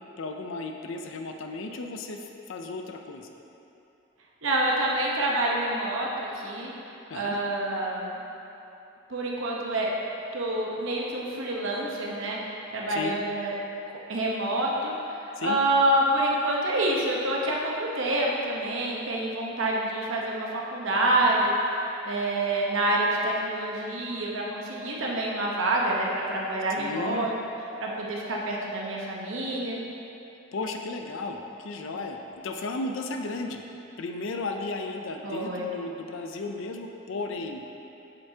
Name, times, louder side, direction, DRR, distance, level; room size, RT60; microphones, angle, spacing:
voice 1, 0.2-3.3 7.1-7.4 12.9-13.2 15.4-15.6 26.7-27.3 30.5-32.2 32.4-33.6 34.0-37.6, left 3 dB, 65° left, 4 dB, 0.4 m, -34 dB
voice 2, 4.4-6.7 7.1-8.2 9.1-9.9 10.3-12.4 12.7-13.5 14.1-21.6 22.0-27.3 27.8-29.8 35.2-35.7, right 1 dB, 70° right, -3 dB, 0.9 m, -27 dB
8.0 x 6.7 x 2.8 m, 2.9 s
head